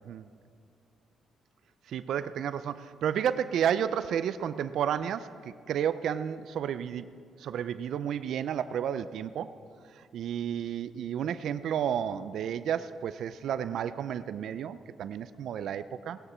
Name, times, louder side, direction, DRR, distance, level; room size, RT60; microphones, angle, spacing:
voice 1, 1.9-7.1 7.4-9.5 10.0-16.2, right 9 dB, 70° right, 13 dB, 0.4 m, -31 dB
18.5 x 9.9 x 4.4 m, 2.3 s
cardioid pair, 90°, 0 cm